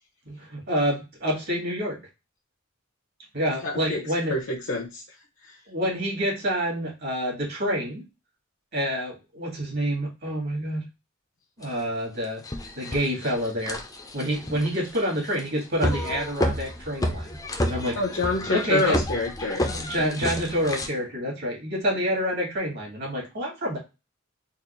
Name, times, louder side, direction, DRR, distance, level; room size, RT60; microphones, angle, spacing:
voice 1, 0.3-2.0 3.3-4.3 5.7-8.0 8.7-10.8 11.6-12.4 12.8-13.8 14.1-17.3 17.7-18.0 18.5-19.0 19.7-23.8, equal, 55° right, -2 dB, 1.9 m, -27 dB
voice 2, 3.6-5.6 17.9-19.7, left 2 dB, 65° left, -1 dB, 0.8 m, -28 dB
sound 1, 11.6-11.7 12.2-20.9, left 1 dB, 15° left, 0.5 m, -30 dB
4.0 x 2.5 x 3.0 m, 0.27 s
head